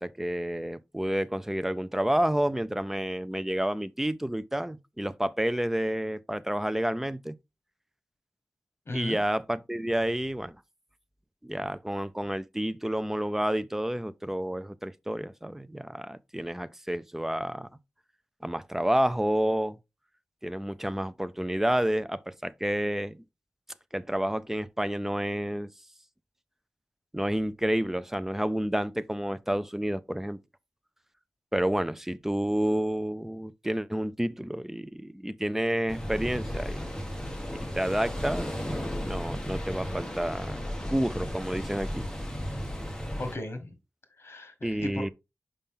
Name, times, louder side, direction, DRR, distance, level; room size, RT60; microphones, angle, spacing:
voice 1, 0.0-7.4 8.9-10.6 11.4-17.7 18.4-19.8 20.4-23.2 23.9-25.7 27.1-30.4 31.5-37.1 37.7-38.5 39.0-40.6 40.9-42.1 44.6-45.1, right 1 dB, 5° right, 0.4 m, -29 dB
voice 2, 8.9-9.2 43.2-43.7 44.2-45.0, left 1 dB, 60° left, 1.7 m, -36 dB
sound 1, 35.9-43.3, equal, 15° left, 1.4 m, -34 dB
5.6 x 5.0 x 3.6 m
wide cardioid pair, 90°, 5 cm